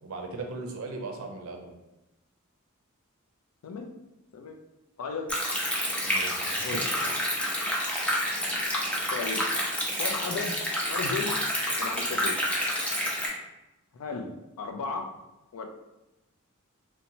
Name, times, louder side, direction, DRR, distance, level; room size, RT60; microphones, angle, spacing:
voice 1, 0.0-1.7 6.0-6.6, right 3 dB, 75° right, 2 dB, 0.5 m, -38 dB
voice 2, 5.0-5.4 6.6-7.1 9.1-9.5 10.0-10.5 10.9-11.4 11.8-12.4 13.9-15.1 15.5-15.7, left 4 dB, 85° left, 4 dB, 0.4 m, -35 dB
Stream, 5.3-13.3, equal, 5° left, 0.4 m, -29 dB
2.9 x 2.1 x 2.6 m, 0.98 s
head